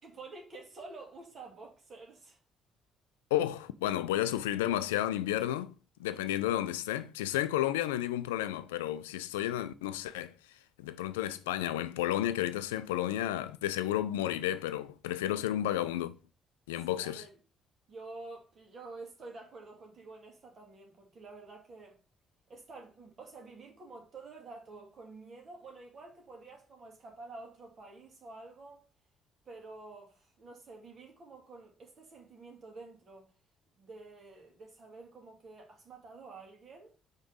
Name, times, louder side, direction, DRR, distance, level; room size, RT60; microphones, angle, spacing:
voice 1, 0.0-2.4 15.4-15.5 16.9-17.3 17.9-22.0 22.5-28.8 29.5-33.3 33.8-36.9, right 3 dB, 45° right, 2.2 m, -49 dB
voice 2, 3.3-5.7 6.0-10.3 10.8-16.2 16.7-17.2, left 13 dB, 80° left, 0.3 m, -32 dB
5.2 x 3.6 x 5.4 m
figure-of-eight pair, 45°, 0 cm